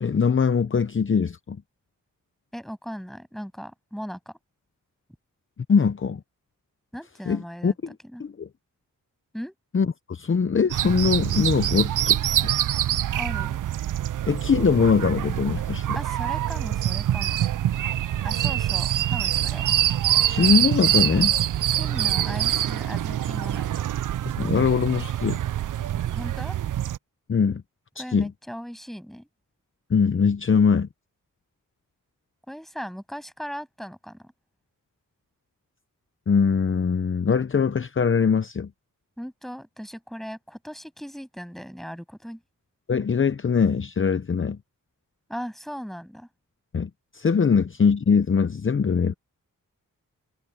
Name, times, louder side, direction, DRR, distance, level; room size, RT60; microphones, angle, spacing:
voice 1, 0.0-1.6 5.7-6.2 7.3-7.9 8.2-8.5 9.7-12.5 14.3-16.0 20.3-21.4 24.4-25.4 27.3-27.6 28.0-28.3 29.9-30.9 36.3-38.7 42.9-44.6 46.7-49.1, left 6 dB, 35° left, 0.8 m, -22 dB
voice 2, 2.5-4.4 6.9-8.2 9.3-9.5 13.1-13.6 15.9-17.4 18.2-19.6 21.7-23.8 26.1-26.6 28.0-29.3 32.5-34.3 39.2-42.4 45.3-46.3, equal, ahead, 7.9 m, -38 dB
sound 1, 10.7-27.0, right 12 dB, 65° right, 0.5 m, -25 dB
cardioid pair, 70°, 33 cm